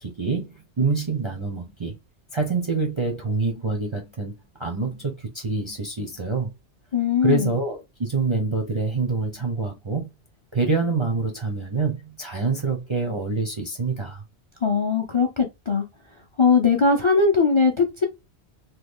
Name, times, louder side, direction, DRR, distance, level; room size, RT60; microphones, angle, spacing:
voice 1, 0.0-1.9 2.3-4.3 4.6-6.5 7.2-10.1 10.5-14.2, right 4 dB, 40° right, 0.4 m, -26 dB
voice 2, 6.9-7.5 14.6-15.8 16.4-18.1, left 5 dB, 40° left, 0.5 m, -20 dB
3.0 x 2.3 x 3.4 m
omnidirectional pair, 1.2 m